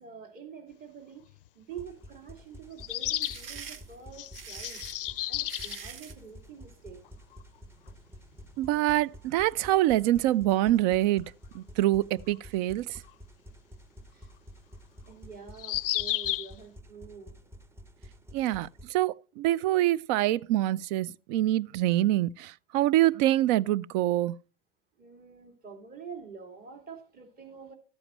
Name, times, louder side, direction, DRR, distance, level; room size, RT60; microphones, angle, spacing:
voice 1, 0.0-4.8 5.3-7.0 7.6-8.6 14.1-14.3 15.1-17.4 25.0-27.7, right 6 dB, 30° right, 2.5 m, -47 dB
sound 1, 1.3-1.4 2.8-3.4 4.1-5.8 7.0-7.1 7.3-7.4 9.8-9.9 13.1-13.2 15.5-16.5, left 15 dB, 65° left, 0.5 m, -32 dB
sound 2, 1.7-18.9, equal, 10° right, 0.8 m, -51 dB
sound 3, 2.9-6.2, right 7 dB, 75° right, 1.1 m, -44 dB
voice 2, 8.6-13.0 18.3-24.4, right 14 dB, 50° right, 0.4 m, -25 dB
13.0 x 7.8 x 3.1 m
figure-of-eight pair, 85°, 29 cm